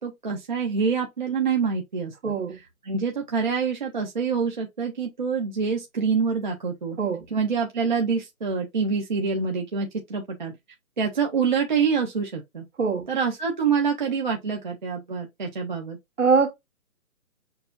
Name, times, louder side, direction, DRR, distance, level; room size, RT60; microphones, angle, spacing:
voice 1, 0.0-2.1 2.8-7.0 7.3-10.5 11.0-12.6 13.1-16.0, right 5 dB, 35° right, 0.7 m, -26 dB
voice 2, 2.2-2.6 7.0-7.2 12.8-13.1 16.2-16.5, right 5 dB, 60° right, 1.8 m, -22 dB
6.6 x 2.6 x 2.2 m
hypercardioid pair, 165°, 42 cm